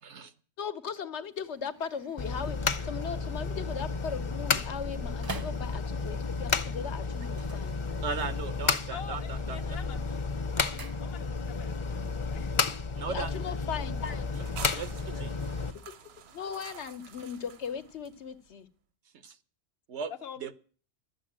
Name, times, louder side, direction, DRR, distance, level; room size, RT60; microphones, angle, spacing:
voice 1, 0.6-7.8 13.1-14.0 15.7-15.8 16.3-18.7, left 6 dB, 85° left, 1.3 m, -38 dB
sound 1, 1.2-6.2 7.2-8.4 8.7-9.2 9.5-11.6 11.9-12.0, right 3 dB, 25° right, 0.5 m, -48 dB
sound 2, 2.2-15.7, left 4 dB, 35° left, 0.6 m, -32 dB
voice 2, 8.0-9.6 13.0-13.3 14.8-15.3 19.2-19.4 19.9-20.1 20.4-20.5, right 5 dB, 90° right, 1.2 m, -37 dB
voice 3, 8.9-10.3 10.5-12.6 13.3-13.6 14.0-14.8 15.1-15.2 15.6-15.7 16.0-16.1 20.1-20.5, left 7 dB, 65° left, 1.1 m, -46 dB
sound 3, 14.0-18.5, right 7 dB, 70° right, 1.0 m, -49 dB
12.0 x 8.1 x 8.7 m
omnidirectional pair, 1.1 m